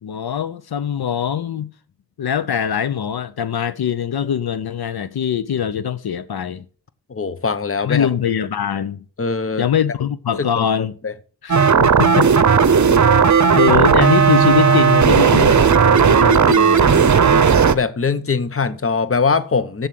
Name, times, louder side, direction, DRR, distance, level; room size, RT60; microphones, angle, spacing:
voice 1, 0.0-1.7 2.2-6.7 7.8-9.0 9.6-10.9 11.4-12.6 13.6-16.9, left 8 dB, 80° left, 0.6 m, -22 dB
voice 2, 7.1-8.1 9.2-9.7 10.4-10.7 11.0-11.1 17.7-19.9, left 5 dB, 35° left, 0.8 m, -21 dB
sound 1, 11.5-17.7, right 6 dB, 50° right, 0.7 m, -13 dB
7.4 x 7.2 x 7.5 m
wide cardioid pair, 75°, 38 cm